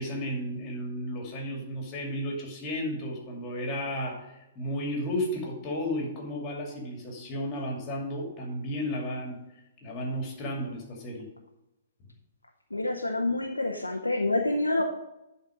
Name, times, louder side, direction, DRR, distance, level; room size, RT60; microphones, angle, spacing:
voice 1, 0.0-9.4 9.8-11.3, equal, 30° left, 0 dB, 2.5 m, -33 dB
voice 2, 12.7-14.8, left 2 dB, 85° left, 2 dB, 0.7 m, -27 dB
10.5 x 4.3 x 5.1 m, 0.92 s
figure-of-eight pair, 115°, 0 cm